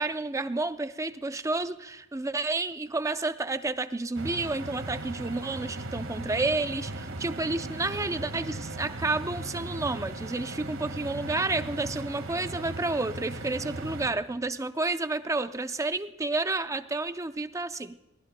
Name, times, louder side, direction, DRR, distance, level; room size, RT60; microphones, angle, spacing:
voice 1, 0.0-18.0, right 3 dB, 15° right, 0.5 m, -30 dB
sound 1, 4.1-14.1, right 2 dB, 80° right, 1.8 m, -38 dB
22.5 x 18.5 x 2.2 m
head